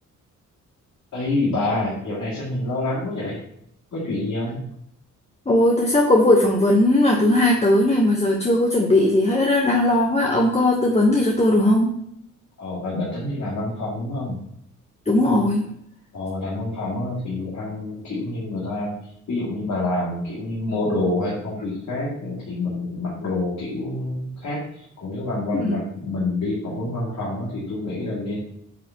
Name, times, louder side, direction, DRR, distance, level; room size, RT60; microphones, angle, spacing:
voice 1, 1.1-3.4 3.9-4.6 12.6-14.4 16.1-18.9 19.3-28.4, left 2 dB, 65° left, -6 dB, 2.5 m, -27 dB
voice 2, 5.5-11.9 15.1-15.7 25.5-25.7, left 1 dB, 20° left, -1 dB, 1.1 m, -18 dB
8.4 x 7.0 x 2.9 m, 0.72 s
cardioid pair, 95°, 32 cm